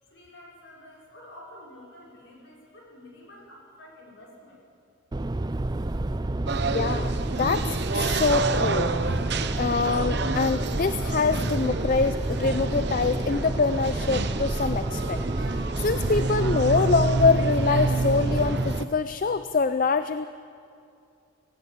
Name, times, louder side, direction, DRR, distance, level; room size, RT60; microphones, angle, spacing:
voice 1, 0.0-4.6, left 1 dB, 60° left, -3 dB, 5.7 m, -49 dB
sound 1, 5.1-18.8, right 2 dB, 20° right, 0.4 m, -29 dB
sound 2, 6.5-18.9, right 3 dB, 55° right, 0.9 m, -29 dB
voice 2, 6.6-8.9 9.6-20.3, left 4 dB, 40° left, 11 dB, 0.4 m, -25 dB
18.5 x 17.5 x 8.6 m, 2.4 s
head